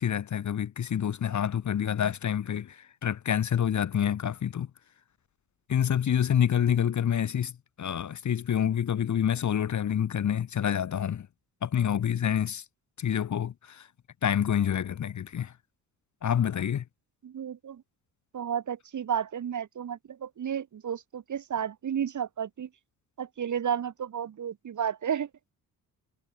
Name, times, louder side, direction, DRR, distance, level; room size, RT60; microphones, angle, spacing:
voice 1, 0.0-4.7 5.7-7.5 7.8-11.3 11.6-12.6 13.0-13.9 14.2-15.5 16.2-16.8, left 9 dB, 40° left, 1.0 m, -27 dB
voice 2, 17.2-17.8 18.3-22.7 23.2-25.3, right 8 dB, 40° right, 1.1 m, -32 dB
hypercardioid pair, 50°, 46 cm